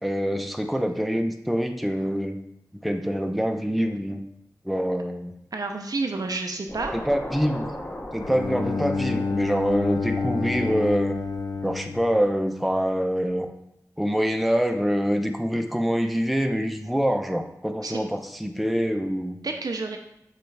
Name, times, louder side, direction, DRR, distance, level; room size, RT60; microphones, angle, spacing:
voice 1, 0.0-2.4 2.8-4.2 4.6-5.3 6.9-7.7 8.1-11.2 11.6-13.5 14.0-19.4, equal, ahead, 5 dB, 0.5 m, -25 dB
voice 2, 5.5-6.9 17.8-18.0 19.4-20.0, right 3 dB, 70° right, 4 dB, 0.5 m, -29 dB
sound 1, 6.7-12.0, left 1 dB, 30° left, 0.7 m, -39 dB
Bowed string instrument, 8.2-13.0, left 4 dB, 85° left, 0.4 m, -29 dB
6.7 x 2.4 x 3.2 m, 0.79 s
wide cardioid pair, 50°, 7 cm